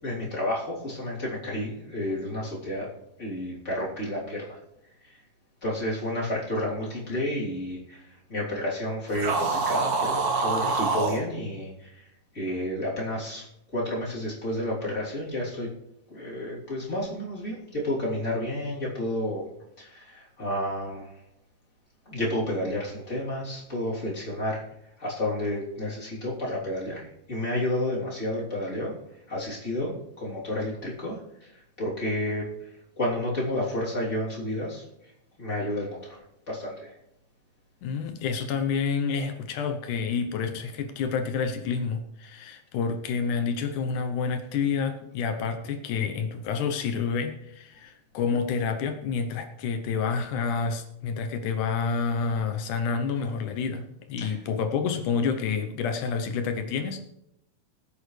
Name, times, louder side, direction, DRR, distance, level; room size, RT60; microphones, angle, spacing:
voice 1, 0.0-2.9 3.2-4.6 5.0-5.2 5.6-12.1 12.3-13.4 13.7-15.7 16.1-19.5 19.8-21.2 22.0-24.6 25.0-28.9 29.3-31.5 31.8-32.7 33.0-34.8 35.4-36.2 36.5-36.9 54.2-54.4, left 1 dB, 20° left, -5 dB, 3.2 m, -31 dB
sound 1, 9.1-11.2, right 4 dB, 65° right, 0.9 m, -26 dB
voice 2, 37.8-57.0, left 5 dB, 70° left, 7 dB, 2.2 m, -29 dB
20.0 x 8.8 x 3.2 m, 0.81 s
omnidirectional pair, 4.0 m